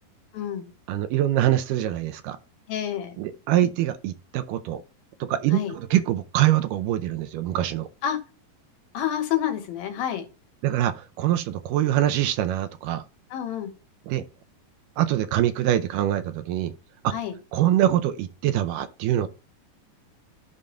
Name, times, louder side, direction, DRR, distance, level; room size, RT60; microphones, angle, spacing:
voice 1, 0.3-0.7 2.7-3.2 5.5-5.8 8.0-8.2 8.9-10.3 13.3-13.7 17.1-17.4, left 10 dB, 90° left, 3.1 m, -28 dB
voice 2, 0.9-2.4 3.2-4.8 5.2-7.9 10.6-13.0 14.1-14.2 15.0-16.7 17.0-17.1 17.5-19.3, right 12 dB, 80° right, 2.0 m, -24 dB
15.0 x 5.1 x 2.3 m
omnidirectional pair, 4.1 m